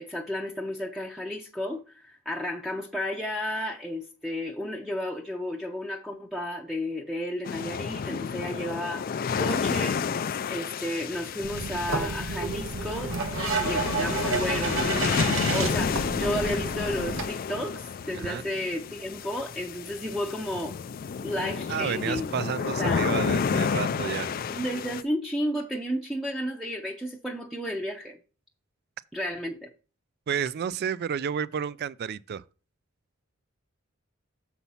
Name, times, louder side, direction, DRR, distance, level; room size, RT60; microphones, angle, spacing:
voice 1, 0.0-10.2 10.5-20.8 21.2-22.3 22.6-23.0 24.5-28.2 29.1-29.7, equal, ahead, 0.6 m, -33 dB
sound 1, 7.4-25.0, left 6 dB, 45° left, 0.4 m, -30 dB
sound 2, 11.4-17.2, right 3 dB, 90° right, 1.4 m, -30 dB
voice 2, 21.7-24.3 30.3-32.4, right 7 dB, 50° right, 0.3 m, -31 dB
7.0 x 4.3 x 5.5 m
head